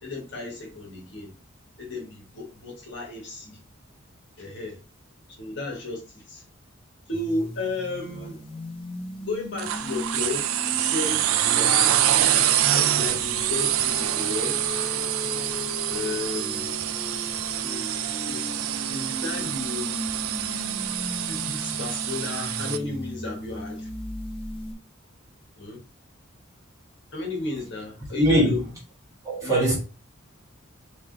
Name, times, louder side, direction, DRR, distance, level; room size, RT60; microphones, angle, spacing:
voice 1, 0.0-1.3 1.8-3.6 4.4-4.8 5.4-6.4 7.1-8.4 9.2-12.0 12.7-14.9 15.9-16.8 17.6-19.9 21.3-23.9 25.6-25.8 27.1-28.6 29.4-29.7, left 3 dB, 55° left, 1.2 m, -34 dB
sound 1, 7.1-24.7, left 1 dB, 25° left, 0.7 m, -37 dB
sound 2, 9.6-22.8, right 11 dB, 90° right, 0.4 m, -26 dB
voice 2, 28.1-28.6 29.2-29.7, equal, 15° right, 1.6 m, -21 dB
3.5 x 3.0 x 3.6 m
head